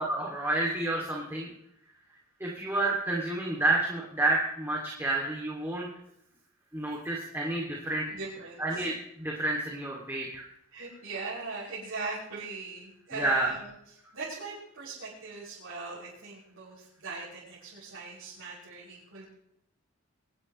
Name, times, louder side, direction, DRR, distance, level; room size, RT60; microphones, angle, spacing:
voice 1, 0.1-1.5 2.4-5.9 6.7-8.0 8.6-10.4 13.2-13.5, right 2 dB, 10° right, -3 dB, 2.3 m, -29 dB
voice 2, 8.1-8.9 10.7-13.7 14.1-19.2, right 3 dB, 65° right, -10 dB, 6.4 m, -40 dB
23.5 x 12.0 x 3.1 m, 0.77 s
head